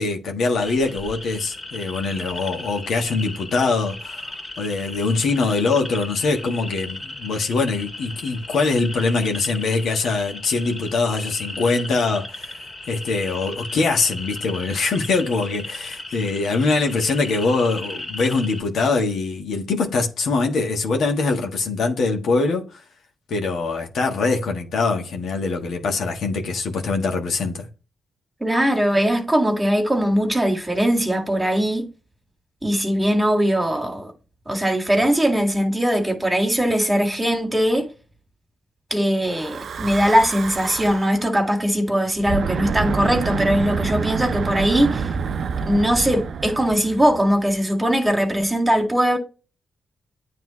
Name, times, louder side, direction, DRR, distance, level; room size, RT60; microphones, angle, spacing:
voice 1, 0.0-22.8 23.3-27.7, left 3 dB, 75° left, 1.4 m, -23 dB
sound 1, 0.6-18.6, left 2 dB, 35° left, 2.3 m, -36 dB
voice 2, 28.4-31.9 32.6-34.1 34.5-37.9 38.9-45.1 45.6-49.2, equal, 15° right, 2.1 m, -20 dB
Breathing / Wind, 39.3-41.2 42.1-47.5, right 5 dB, 65° right, 0.5 m, -27 dB
9.4 x 3.3 x 3.1 m
supercardioid pair, 55°, 0 cm